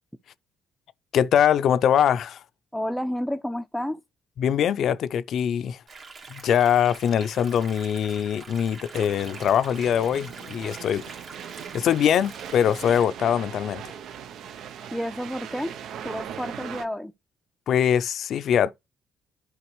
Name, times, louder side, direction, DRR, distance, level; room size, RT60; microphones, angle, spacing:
voice 1, 1.1-2.4 4.4-5.8 6.3-11.0 11.7-13.8 17.7-18.7, left 9 dB, 65° left, 0.4 m, -22 dB
voice 2, 2.7-4.0 14.9-15.7 16.0-17.1, equal, ahead, 0.5 m, -30 dB
sound 1, 5.9-13.1, right 4 dB, 50° right, 2.0 m, -44 dB
sound 2, 8.9-16.9, right 8 dB, 70° right, 0.6 m, -40 dB
11.5 x 5.1 x 3.1 m
cardioid pair, 80°, 0 cm